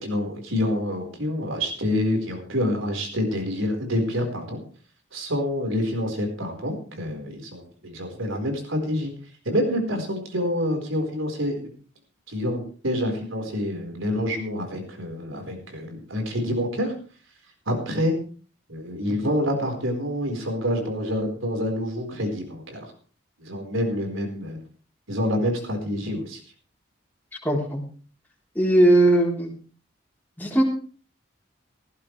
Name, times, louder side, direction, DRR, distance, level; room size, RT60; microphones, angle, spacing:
voice 1, 0.0-4.6 5.1-9.1 9.4-11.7 12.3-17.0 17.7-18.2 18.7-22.9 23.4-24.6 25.1-26.4, left 1 dB, 90° right, 4 dB, 4.5 m, -27 dB
voice 2, 27.4-27.8 28.6-29.5 30.4-30.6, right 1 dB, 10° left, -2 dB, 3.7 m, -19 dB
17.5 x 15.0 x 3.3 m, 0.40 s
head